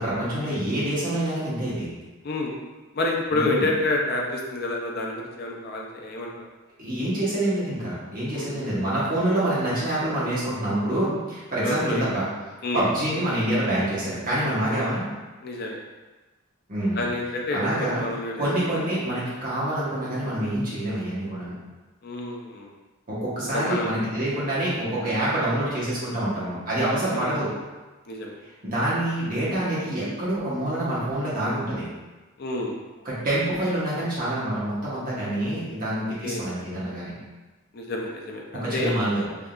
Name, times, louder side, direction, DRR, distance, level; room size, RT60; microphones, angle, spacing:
voice 1, 0.0-1.9 3.3-3.7 6.8-12.3 12.7-15.0 16.7-17.0 17.5-18.0 18.4-21.6 23.1-27.5 28.6-31.9 33.0-37.1 38.5-39.5, right 1 dB, 45° right, -9 dB, 1.2 m, -26 dB
voice 2, 2.2-2.5 2.9-6.3 8.4-8.5 11.6-12.0 12.6-12.8 15.4-15.8 17.0-18.9 22.0-22.7 23.5-23.9 27.1-27.3 28.1-28.4 32.4-32.8 36.2-36.5 37.7-38.9, left 2 dB, 50° left, 0 dB, 0.5 m, -28 dB
3.5 x 2.7 x 2.4 m, 1.2 s
head